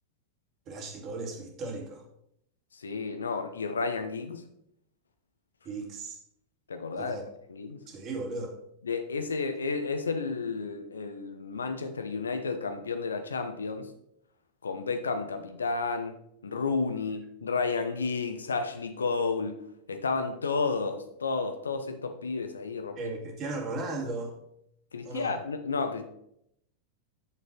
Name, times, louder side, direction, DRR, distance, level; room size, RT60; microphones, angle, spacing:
voice 1, 0.7-2.0 5.6-6.2 7.0-7.2 7.9-8.6 23.0-24.4 25.0-25.4, right 3 dB, 35° right, 2.3 m, -36 dB
voice 2, 2.8-4.4 6.7-7.2 7.5-7.8 8.9-13.9 14.6-16.1 16.4-19.6 19.9-23.1 24.9-26.0, left 4 dB, 70° left, 1.0 m, -31 dB
8.7 x 6.9 x 4.6 m
figure-of-eight pair, 90°, 0 cm